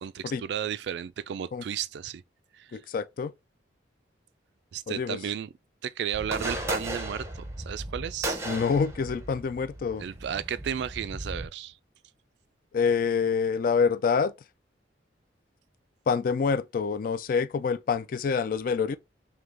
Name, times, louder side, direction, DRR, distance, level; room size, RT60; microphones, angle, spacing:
voice 1, 0.0-2.2 2.6-2.7 4.7-5.5 5.8-8.4 10.0-11.7, right 8 dB, 65° right, 0.3 m, -33 dB
voice 2, 2.7-3.3 4.9-5.2 8.5-10.0 12.7-14.3 16.1-19.0, left 5 dB, 50° left, 0.3 m, -26 dB
sound 1, 6.1-11.5, right 1 dB, 15° right, 0.6 m, -36 dB
3.8 x 2.8 x 3.2 m
head